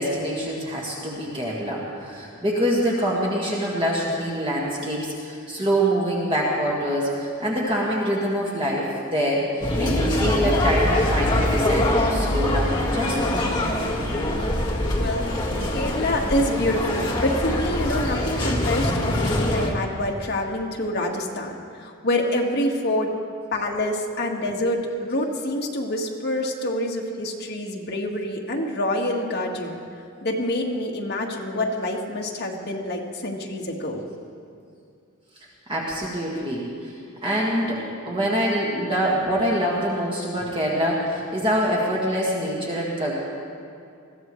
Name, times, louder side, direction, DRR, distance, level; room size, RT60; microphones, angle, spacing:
voice 1, 0.0-9.5 9.8-13.6 35.7-36.9 37.2-43.1, equal, 25° right, -5 dB, 1.7 m, -25 dB
sound 1, 9.6-19.7, left 1 dB, 20° left, 1.7 m, -23 dB
voice 2, 15.0-23.1 23.5-29.8 30.2-34.0, left 1 dB, 50° left, -1 dB, 1.5 m, -26 dB
21.0 x 14.5 x 3.1 m, 2.4 s
head